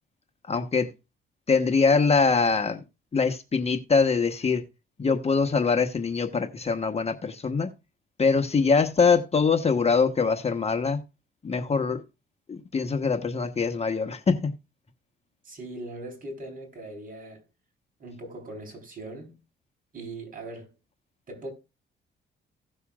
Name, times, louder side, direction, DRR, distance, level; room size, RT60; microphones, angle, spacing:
voice 1, 0.5-0.9 1.5-2.8 3.1-4.6 5.0-7.7 8.2-11.0 11.4-12.0 12.5-14.5, left 5 dB, 30° left, 1.1 m, -23 dB
voice 2, 15.4-17.4 18.0-19.4 19.9-20.7 21.3-21.5, right 2 dB, 45° right, 4.1 m, -40 dB
17.0 x 6.7 x 2.4 m
cardioid pair, 90°, 20 cm